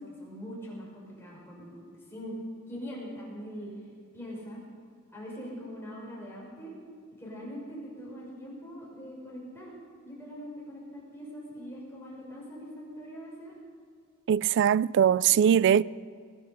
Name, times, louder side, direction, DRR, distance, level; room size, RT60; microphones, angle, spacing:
voice 1, 0.0-2.3 2.7-3.7 4.1-4.6 5.1-6.7 7.2-9.7 10.0-13.5, equal, 10° left, 5.6 m, -42 dB
voice 2, 14.3-15.8, right 8 dB, 60° right, 0.3 m, -21 dB
20.5 x 10.5 x 6.7 m
head